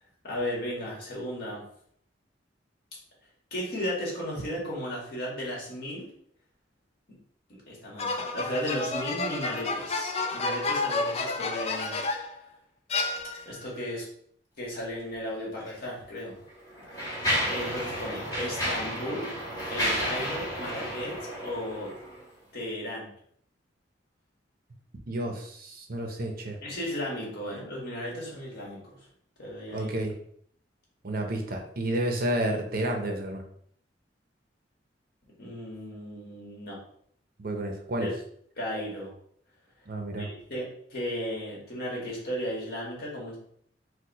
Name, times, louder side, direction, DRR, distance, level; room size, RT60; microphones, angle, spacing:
voice 1, 0.2-1.6 3.5-6.1 7.1-7.2 7.7-12.0 13.5-14.1 14.6-16.4 16.9-19.3 19.7-21.9 22.5-23.1 26.6-29.0 29.4-29.9 35.4-36.8 38.0-38.1 38.6-39.1 40.2-43.4, equal, 60° left, -4 dB, 1.8 m, -35 dB
sound 1, 8.0-12.4 12.9-13.7, left 3 dB, 35° left, 0.4 m, -30 dB
Mechanisms, 15.6-15.7 16.5-22.2, equal, 20° left, 1.3 m, -32 dB
voice 2, 25.1-26.6 29.7-30.1 31.0-33.4 37.4-38.1 39.9-40.3, right 1 dB, 55° right, 3 dB, 0.7 m, -30 dB
4.5 x 2.3 x 4.1 m, 0.64 s
head